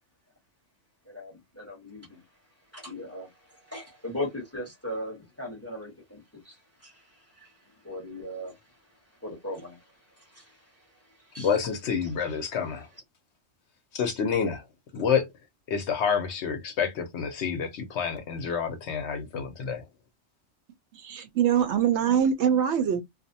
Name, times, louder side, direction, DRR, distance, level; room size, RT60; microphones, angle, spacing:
voice 1, 1.0-2.2 2.7-7.5 7.8-8.6 9.2-11.6 12.0-12.1, left 1 dB, 15° left, 0.8 m, -39 dB
voice 2, 11.4-12.9 13.9-14.6 14.9-15.3 15.7-19.8, left 6 dB, 65° left, 0.8 m, -28 dB
voice 3, 20.9-23.0, right 8 dB, 65° right, 0.8 m, -23 dB
2.5 x 2.0 x 2.6 m
omnidirectional pair, 1.4 m